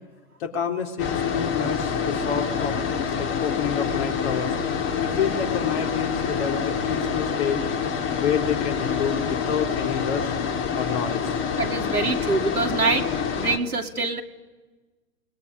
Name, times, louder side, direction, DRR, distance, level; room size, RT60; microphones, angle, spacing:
voice 1, 0.4-2.8 3.2-4.6 5.0-7.6 8.1-10.3 10.7-11.3, left 7 dB, 45° left, 4 dB, 3.8 m, -28 dB
sound 1, 1.0-13.6, left 6 dB, 25° left, 2.4 m, -26 dB
voice 2, 11.6-13.1 13.4-14.2, right 3 dB, 85° right, 4 dB, 2.5 m, -24 dB
29.0 x 21.0 x 9.8 m, 1.2 s
figure-of-eight pair, 110°, 44 cm